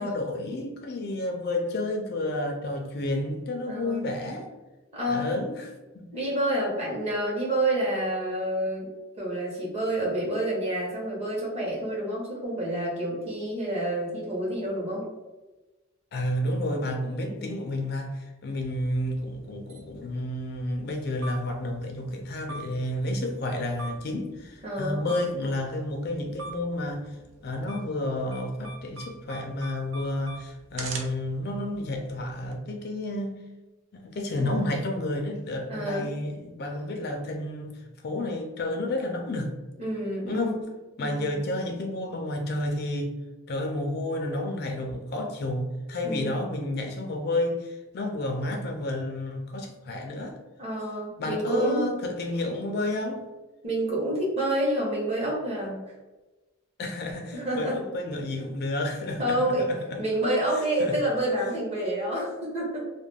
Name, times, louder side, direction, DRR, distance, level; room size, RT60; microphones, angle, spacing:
voice 1, 0.0-4.5 5.1-6.1 16.1-27.1 27.4-33.4 33.9-39.5 40.3-40.6 41.0-43.2 43.5-50.4 51.2-53.3 56.8-59.8 60.8-61.0, left 1 dB, 50° left, 0.3 m, -31 dB
voice 2, 3.7-4.0 4.9-5.4 6.1-8.9 9.2-15.1 17.3-17.5 24.6-25.1 34.4-34.5 35.7-36.1 39.8-40.6 41.0-41.4 46.0-46.4 50.6-51.8 53.6-55.8 57.3-57.8 59.2-59.7 60.0-62.8, right 1 dB, 30° right, 0.9 m, -28 dB
sound 1, 18.6-32.5, right 3 dB, 70° right, 0.5 m, -45 dB
2.3 x 2.2 x 3.2 m
head